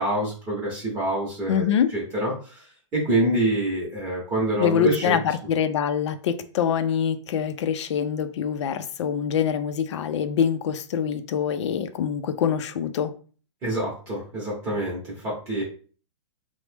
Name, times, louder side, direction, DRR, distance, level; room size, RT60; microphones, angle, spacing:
voice 1, 0.0-5.2 13.6-15.6, right 1 dB, 20° right, 0.8 m, -26 dB
voice 2, 1.5-1.9 4.6-13.1, left 8 dB, 65° left, 0.4 m, -25 dB
3.0 x 2.1 x 3.2 m
hypercardioid pair, 165°, 16 cm